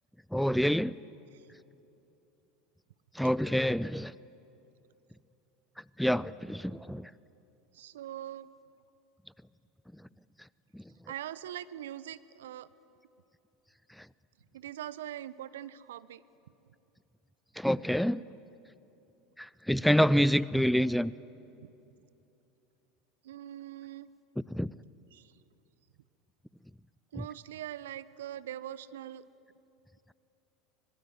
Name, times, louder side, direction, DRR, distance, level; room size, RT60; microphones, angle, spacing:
voice 1, 0.3-0.9 3.2-4.1 6.0-7.1 10.7-10.8 17.6-18.2 19.4-21.1 24.5-24.7 27.2-27.3, equal, ahead, 20 dB, 0.5 m, -27 dB
voice 2, 7.7-8.5 11.1-12.7 14.5-16.2 21.6-21.7 23.2-24.1 25.1-25.3 27.1-29.2, right 12 dB, 70° right, 17 dB, 0.7 m, -42 dB
24.5 x 21.0 x 9.5 m, 2.9 s
figure-of-eight pair, 75°, 0 cm